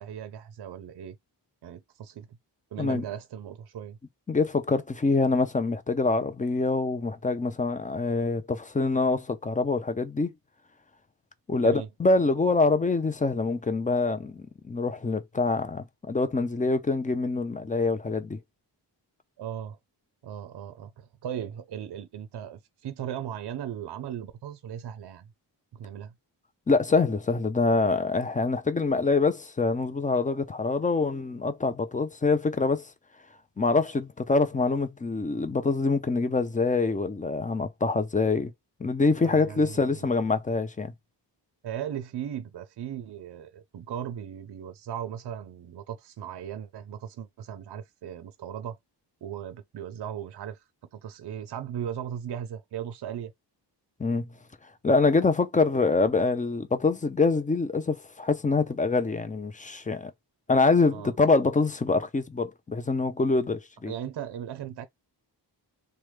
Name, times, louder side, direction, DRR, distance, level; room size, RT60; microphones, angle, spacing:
voice 1, 0.0-1.2 1.6-2.3 2.7-4.0 11.6-11.9 19.4-19.8 20.2-25.3 25.7-26.1 39.2-40.1 41.6-48.8 49.2-50.6 50.9-53.3 60.9-61.1 63.9-64.9, right 9 dB, 65° right, 0.5 m, -37 dB
voice 2, 4.3-10.3 11.5-18.4 26.7-32.9 33.6-38.5 38.8-40.9 54.0-54.3 54.8-60.1 60.5-63.9, left 3 dB, 20° left, 0.3 m, -25 dB
3.0 x 2.2 x 3.2 m
wide cardioid pair, 135°, 43 cm